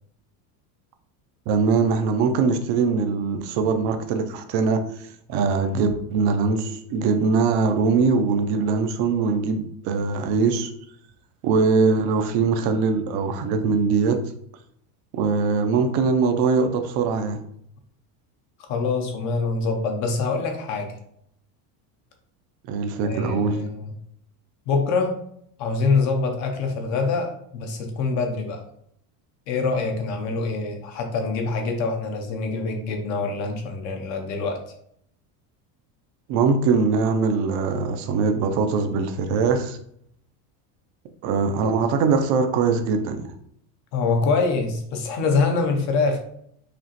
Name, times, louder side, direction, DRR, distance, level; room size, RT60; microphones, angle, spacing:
voice 1, 1.5-4.8 5.3-10.7 11.4-14.2 15.1-17.4 22.7-23.6 36.3-39.8 41.2-43.2, right 4 dB, 40° right, 8 dB, 0.4 m, -22 dB
voice 2, 18.6-21.0 23.0-23.9 24.7-25.2 25.6-28.6 29.5-34.6 43.9-46.2, left 4 dB, 40° left, 4 dB, 0.5 m, -25 dB
5.0 x 2.9 x 2.8 m, 0.69 s
cardioid pair, 175°, 46 cm